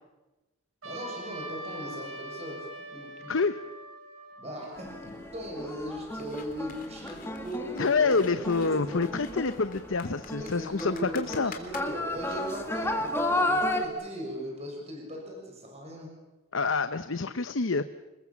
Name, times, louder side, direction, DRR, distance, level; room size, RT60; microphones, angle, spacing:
voice 1, 0.8-2.7 2.9-3.4 4.4-9.1 10.4-16.1, equal, 30° right, 0 dB, 7.0 m, -39 dB
Trumpet, 0.8-5.3, right 1 dB, 80° right, 4.4 m, -43 dB
sound 1, 4.8-13.9, left 1 dB, 10° left, 1.9 m, -33 dB
sound 2, 6.2-12.4, left 6 dB, 40° left, 3.4 m, -48 dB
voice 2, 7.8-11.5 16.5-17.8, left 4 dB, 65° left, 11 dB, 0.8 m, -27 dB
28.0 x 21.5 x 7.3 m, 1.1 s
head